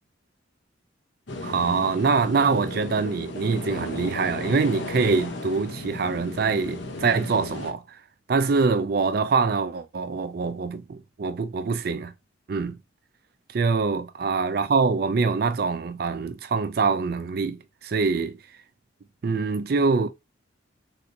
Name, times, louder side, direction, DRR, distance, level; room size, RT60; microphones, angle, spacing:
sound 1, 1.3-7.7, left 2 dB, 65° left, 0.7 m, -35 dB
voice 1, 1.4-7.8 8.3-12.1 12.5-12.8 13.5-18.4 19.2-20.1, right 4 dB, 50° right, 0.4 m, -24 dB
3.3 x 2.8 x 2.6 m
head